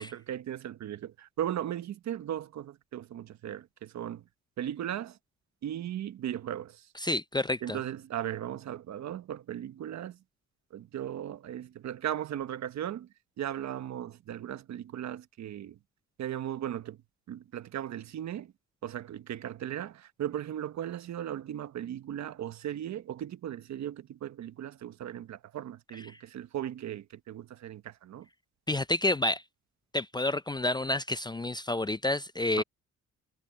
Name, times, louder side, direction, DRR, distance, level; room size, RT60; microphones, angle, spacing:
voice 1, 0.0-4.2 4.6-5.2 5.6-6.9 7.6-10.2 10.7-13.1 13.4-15.8 16.2-17.0 17.3-18.5 18.8-28.3 32.6-32.7, right 11 dB, 65° right, 1.2 m, -37 dB
voice 2, 7.0-7.8 26.1-26.2 28.7-29.4 29.9-32.6, left 2 dB, 15° left, 0.4 m, -29 dB
cardioid pair, 90°, 30 cm